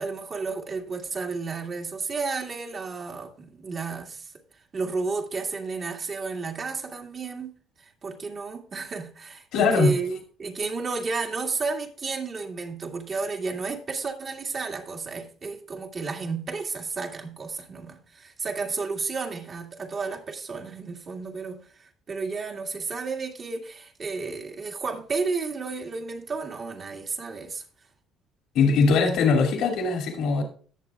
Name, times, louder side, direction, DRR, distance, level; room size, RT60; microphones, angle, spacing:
voice 1, 0.0-4.3 4.7-7.5 7.8-27.6, right 4 dB, 40° right, 1.9 m, -32 dB
voice 2, 9.5-9.9 28.5-30.4, left 4 dB, 70° left, 2.4 m, -21 dB
17.5 x 6.9 x 2.4 m
supercardioid pair, 85°, 0 cm